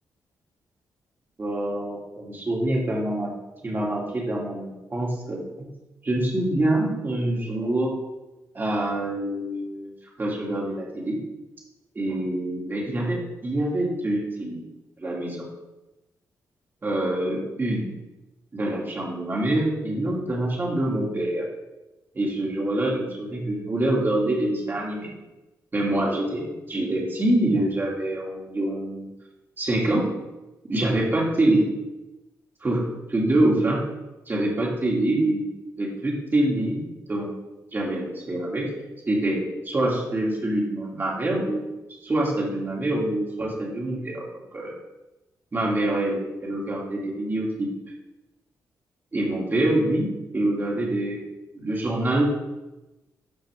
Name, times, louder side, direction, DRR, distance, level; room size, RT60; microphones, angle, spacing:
voice 1, 1.4-3.3 3.6-5.4 6.0-7.9 8.5-9.9 10.2-11.2 11.9-14.6 15.0-15.5 16.8-17.9 18.5-21.5 22.1-25.1 25.7-29.1 29.6-30.1 30.7-31.6 32.6-33.8 34.3-35.4 35.8-37.3 37.7-38.7 39.1-41.7 42.0-44.3 44.5-44.7 45.5-47.7 49.1-50.1 50.3-51.2 51.5-52.2, right 1 dB, 30° right, -3 dB, 2.6 m, -25 dB
13.0 x 5.1 x 3.6 m, 1.0 s
cardioid pair, 105°, 7 cm